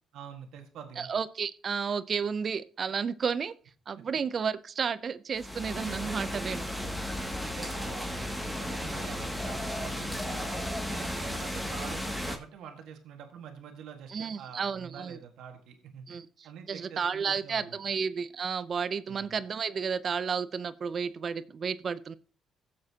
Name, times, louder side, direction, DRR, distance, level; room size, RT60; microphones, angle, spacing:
voice 1, 0.1-1.1 4.0-4.1 6.8-10.6 10.9-16.2 16.4-17.8 19.1-19.4, right 7 dB, 85° right, 5 dB, 1.6 m, -46 dB
voice 2, 1.0-3.5 3.9-6.7 14.1-15.2 16.1-16.3 16.7-22.1, right 6 dB, 50° right, 16 dB, 0.6 m, -32 dB
sound 1, 5.3-12.4, left 1 dB, 5° left, 2.1 m, -34 dB
17.5 x 7.4 x 2.8 m, 0.39 s
cardioid pair, 90°, 0 cm